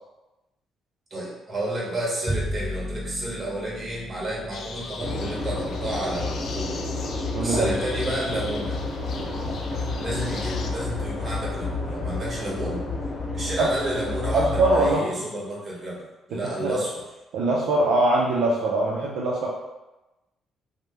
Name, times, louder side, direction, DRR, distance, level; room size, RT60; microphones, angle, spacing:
voice 1, 1.1-6.8 7.4-8.8 10.0-12.8 13.3-17.0, right 1 dB, 35° right, -5 dB, 1.3 m, -31 dB
Bowed string instrument, 2.3-8.7, equal, 15° right, 0.4 m, -36 dB
sound 1, 4.5-10.7, left 4 dB, 65° left, 0.4 m, -41 dB
sound 2, 5.0-14.9, left 2 dB, 45° left, 0.8 m, -30 dB
voice 2, 7.3-7.8 13.6-13.7 14.3-15.3 16.3-16.8 17.3-19.5, right 2 dB, 80° right, -3 dB, 0.4 m, -22 dB
3.1 x 2.1 x 3.3 m, 1.0 s
cardioid pair, 90°, 0 cm